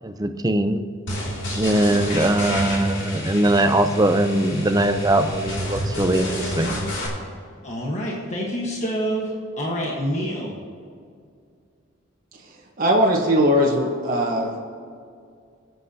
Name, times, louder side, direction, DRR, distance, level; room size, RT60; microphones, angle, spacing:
voice 1, 0.0-0.8 1.5-6.8, right 1 dB, 20° right, 7 dB, 0.6 m, -21 dB
sound 1, 1.1-7.1, left 1 dB, 65° left, 2.6 m, -29 dB
voice 2, 7.6-10.6, equal, 35° left, -2 dB, 1.4 m, -27 dB
voice 3, 12.8-14.5, equal, 45° right, -2 dB, 1.4 m, -19 dB
21.0 x 7.8 x 2.9 m, 2.2 s
head